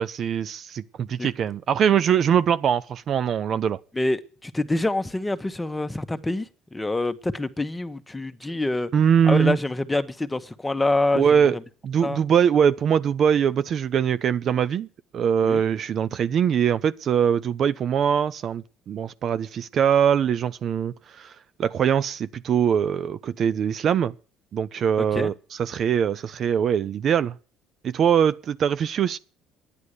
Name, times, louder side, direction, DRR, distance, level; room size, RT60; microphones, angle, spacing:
voice 1, 0.0-3.8 8.9-9.6 11.1-11.6 11.8-14.9 15.1-21.3 21.6-24.1 24.5-27.4 27.8-29.2, right 8 dB, 50° right, 0.5 m, -22 dB
voice 2, 3.9-6.5 6.7-8.9 9.3-11.2 12.0-12.2 15.4-15.6 25.1-25.3, left 2 dB, 10° left, 1.1 m, -26 dB
11.0 x 9.9 x 6.6 m
supercardioid pair, 90°, 0 cm